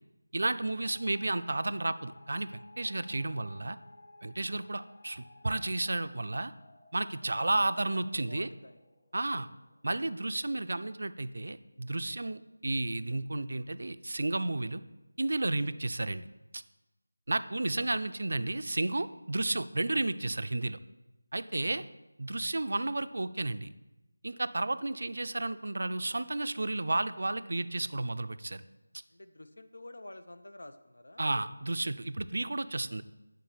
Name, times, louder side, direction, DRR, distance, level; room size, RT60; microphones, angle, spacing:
voice 1, 0.3-3.8 4.2-6.5 6.9-8.5 9.1-9.5 9.8-14.8 15.2-16.3 16.5-16.6 17.3-20.8 21.3-21.8 22.2-23.7 24.2-28.6 31.2-33.0, right 2 dB, 60° right, 12 dB, 0.4 m, -32 dB
sound 1, 0.8-10.8, left 2 dB, 15° left, 0.8 m, -58 dB
voice 2, 7.3-8.8 17.6-17.9 21.7-21.9 29.1-31.3, left 1 dB, 75° left, 10 dB, 0.7 m, -50 dB
9.2 x 3.9 x 6.8 m, 1.0 s
figure-of-eight pair, 175°, 0 cm